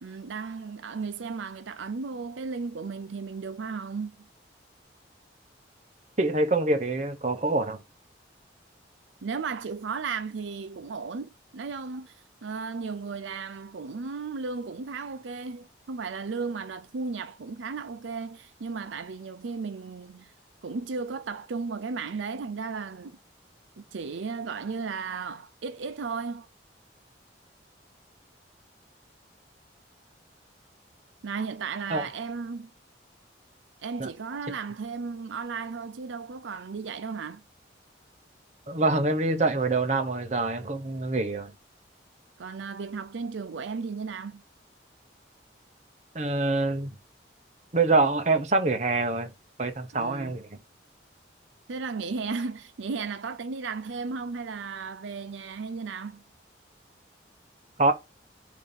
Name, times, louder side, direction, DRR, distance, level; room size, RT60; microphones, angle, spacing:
voice 1, 0.0-4.3 9.2-20.3 20.6-23.2 23.8-26.5 31.2-32.7 33.8-37.4 42.4-44.4 49.9-50.4 51.7-56.2, right 4 dB, 85° right, 0.5 m, -35 dB
voice 2, 6.2-7.8 31.9-32.1 34.0-34.1 38.7-41.5 46.1-46.9 47.7-49.3 49.6-50.5 57.8-57.9, right 3 dB, 40° right, 0.8 m, -25 dB
7.0 x 2.8 x 5.8 m
head